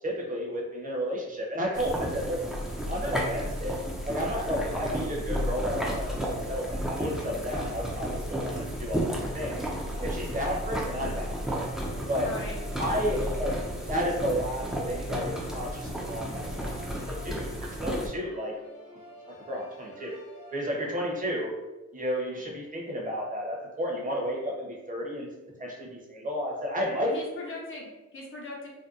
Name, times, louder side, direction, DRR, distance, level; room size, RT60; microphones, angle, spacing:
voice 1, 0.0-2.4 2.9-3.8 4.0-9.6 10.0-11.7 12.1-12.3 12.8-16.8 17.1-18.5 19.3-20.1 20.5-21.5 21.9-25.3 25.6-27.1 27.4-27.5, equal, 25° right, -2 dB, 0.8 m, -32 dB
sound 1, 1.7-18.1, equal, ahead, 0.4 m, -33 dB
sound 2, 7.1-21.4, left 1 dB, 80° left, 0.8 m, -50 dB
voice 2, 12.2-12.6 27.1-28.7, left 2 dB, 45° left, -2 dB, 0.6 m, -39 dB
2.7 x 2.1 x 2.4 m, 1.1 s
cardioid pair, 90°, 30 cm